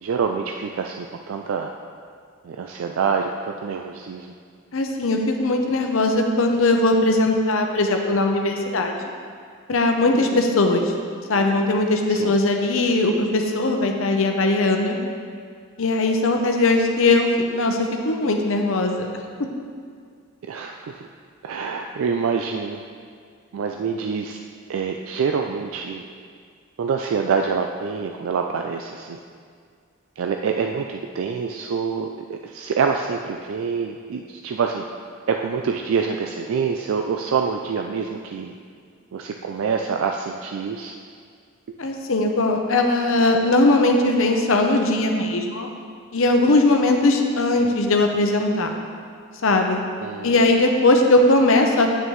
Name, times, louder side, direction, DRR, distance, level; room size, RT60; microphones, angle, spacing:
voice 1, 0.0-1.7 2.4-3.3 3.6-4.3 10.1-10.4 12.1-12.4 20.5-21.1 21.4-22.8 23.5-24.4 24.7-26.0 26.8-29.2 30.2-34.8 35.3-38.6 39.1-41.0 50.0-50.5, right 5 dB, 80° right, 3 dB, 0.3 m, -26 dB
voice 2, 4.7-9.1 9.7-10.9 11.3-15.0 15.8-19.1 41.8-45.7 46.1-48.7 49.4-49.8 50.2-51.9, left 2 dB, 75° left, 3 dB, 0.7 m, -19 dB
8.8 x 6.4 x 3.1 m, 2.1 s
head